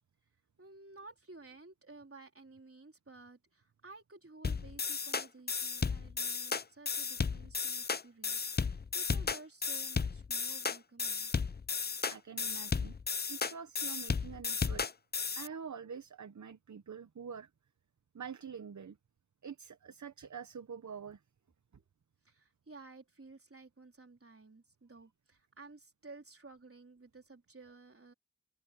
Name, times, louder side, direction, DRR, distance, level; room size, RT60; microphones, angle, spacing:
voice 1, 0.6-11.3 22.2-28.1, right 3 dB, 45° right, 4.0 m, -54 dB
sound 1, 4.4-15.5, left 5 dB, 30° left, 0.5 m, -34 dB
voice 2, 12.1-13.0 13.3-14.8 15.4-17.5 18.1-19.0 19.4-21.2, right 6 dB, 65° right, 0.9 m, -46 dB
open air
wide cardioid pair, 50°, 31 cm